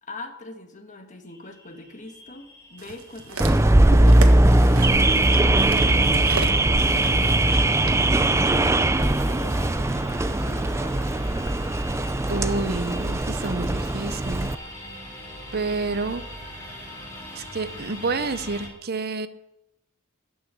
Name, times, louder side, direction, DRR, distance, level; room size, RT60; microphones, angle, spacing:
voice 1, 0.0-5.3 5.7-8.1 8.3-11.4, left 2 dB, 35° left, 5 dB, 1.6 m, -43 dB
sound 1, 1.3-18.7, equal, 15° left, 3.3 m, -42 dB
sound 2, 2.8-9.1 9.9-10.0, right 4 dB, 75° right, 1.5 m, -36 dB
Car / Alarm, 3.4-14.5, right 1 dB, 15° right, 0.5 m, -20 dB
voice 2, 12.3-14.5 15.5-16.2 17.4-19.3, right 3 dB, 45° right, 12 dB, 0.8 m, -29 dB
14.0 x 6.4 x 10.0 m, 0.87 s
head